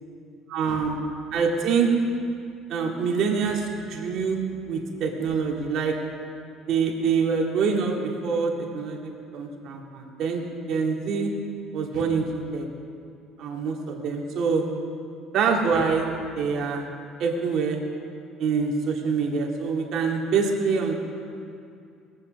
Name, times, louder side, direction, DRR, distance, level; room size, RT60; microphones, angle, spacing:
voice 1, 0.5-1.0 1.3-2.0 2.7-6.0 6.7-11.3 11.7-12.7 13.4-14.8 15.3-16.9 17.2-17.8 18.4-20.9, right 5 dB, 50° right, 0 dB, 2.1 m, -25 dB
20.5 x 8.5 x 6.4 m, 2.4 s
cardioid pair, 145°, 0 cm